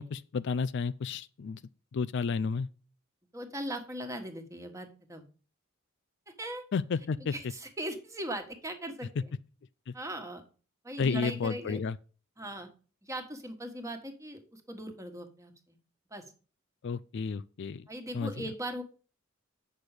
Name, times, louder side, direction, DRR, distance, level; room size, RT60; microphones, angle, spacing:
voice 1, 0.0-1.6 1.9-2.7 6.7-7.3 9.9-10.0 11.0-12.0 16.8-17.9 18.1-18.3, left 5 dB, 60° left, 0.4 m, -31 dB
voice 2, 3.3-5.2 6.3-6.6 7.2-9.3 9.9-10.4 10.8-11.8 12.4-12.7 13.0-15.8 16.1-16.2 17.9-18.8, right 1 dB, 15° right, 1.5 m, -39 dB
8.6 x 6.2 x 4.9 m
head